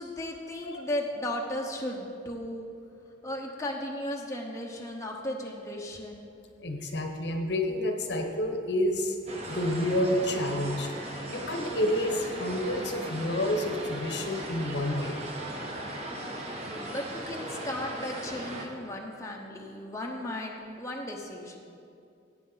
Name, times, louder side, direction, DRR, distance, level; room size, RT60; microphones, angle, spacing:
voice 1, 0.0-2.7 3.2-6.3 16.8-21.6, left 1 dB, 15° left, -1 dB, 0.9 m, -35 dB
voice 2, 6.6-9.2 9.5-10.9 11.3-15.2, left 1 dB, 70° left, 4 dB, 1.0 m, -29 dB
sound 1, 9.3-18.7, right 1 dB, 35° right, 1.2 m, -38 dB
15.0 x 8.5 x 4.0 m, 2.5 s
head